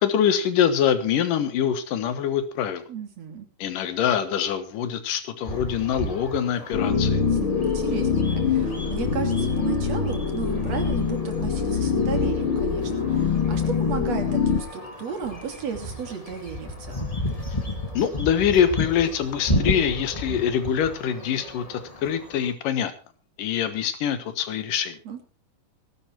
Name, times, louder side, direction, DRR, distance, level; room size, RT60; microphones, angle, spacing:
voice 1, 0.0-2.9 3.6-7.2 17.9-22.9 23.4-25.0, left 8 dB, 80° left, 11 dB, 3.1 m, -24 dB
voice 2, 2.9-3.5 7.3-17.1 25.1-25.2, right 7 dB, 50° right, 5 dB, 3.6 m, -34 dB
sound 1, 5.4-22.5, left 1 dB, 15° left, 1.4 m, -34 dB
sound 2, 6.7-14.6, left 6 dB, 45° left, 1.9 m, -24 dB
17.5 x 11.5 x 4.5 m, 0.34 s
omnidirectional pair, 3.8 m